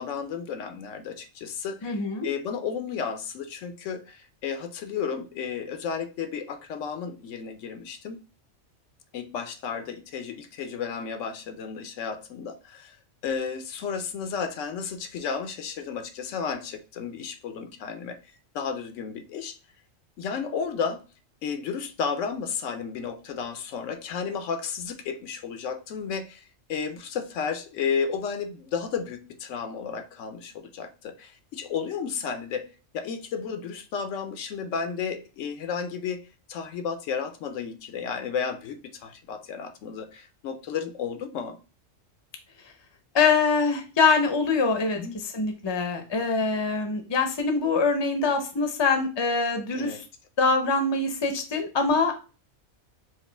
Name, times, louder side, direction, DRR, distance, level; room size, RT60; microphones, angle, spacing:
voice 1, 0.0-8.2 9.1-13.0 13.2-18.2 18.5-19.6 20.2-21.0 21.4-26.4 26.7-32.7 32.9-36.2 36.5-41.6 44.9-45.1 49.7-50.0, left 6 dB, 75° left, 0.9 m, -33 dB
voice 2, 1.8-2.3 43.1-45.0 45.3-50.0 50.4-52.2, left 4 dB, 30° left, 0.6 m, -24 dB
4.7 x 2.5 x 3.3 m
omnidirectional pair, 1.3 m